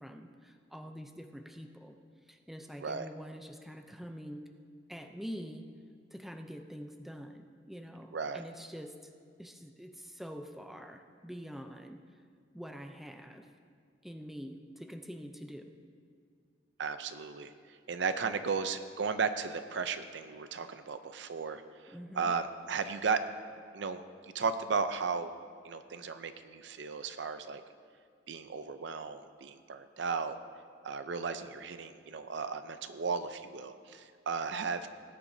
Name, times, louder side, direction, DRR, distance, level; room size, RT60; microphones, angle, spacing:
voice 1, 0.0-2.0 2.3-4.5 4.9-5.7 6.1-9.1 9.4-12.0 12.5-13.5 14.0-15.7 21.9-22.3, equal, ahead, 5 dB, 0.5 m, -45 dB
voice 2, 16.8-23.2 23.7-25.3 25.6-27.6 28.3-30.3 30.8-34.9, right 5 dB, 70° right, 10 dB, 0.6 m, -35 dB
18.0 x 10.0 x 2.7 m, 2.2 s
head